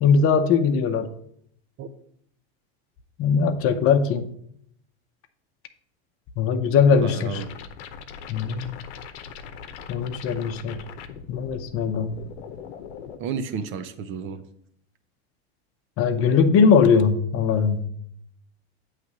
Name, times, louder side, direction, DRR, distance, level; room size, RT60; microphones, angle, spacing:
voice 1, 0.0-1.1 3.2-4.3 6.4-7.4 8.3-8.8 9.9-10.8 11.3-12.2 16.0-17.9, left 6 dB, 45° left, 7 dB, 0.8 m, -20 dB
voice 2, 6.9-7.5 13.2-14.4, right 6 dB, 40° right, 10 dB, 0.7 m, -32 dB
sound 1, 7.3-13.2, left 6 dB, 80° left, 0.8 m, -40 dB
8.1 x 3.3 x 6.0 m, 0.69 s
supercardioid pair, 120°, 32 cm